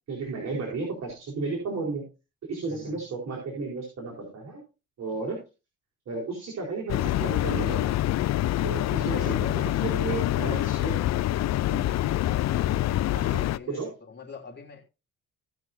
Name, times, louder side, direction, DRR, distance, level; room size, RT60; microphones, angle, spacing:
voice 1, 0.1-2.1 2.4-4.6 5.0-5.4 6.1-7.9 8.6-10.9 11.7-11.9 13.1-13.9, right 3 dB, 60° right, -3 dB, 4.5 m, -33 dB
voice 2, 2.7-3.0 9.1-10.6 11.9-14.8, left 5 dB, 35° left, -1 dB, 3.2 m, -43 dB
sound 1, 6.9-13.6, left 14 dB, 60° left, 0.5 m, -26 dB
18.0 x 6.0 x 2.7 m, 0.29 s
cardioid pair, 90°, 30 cm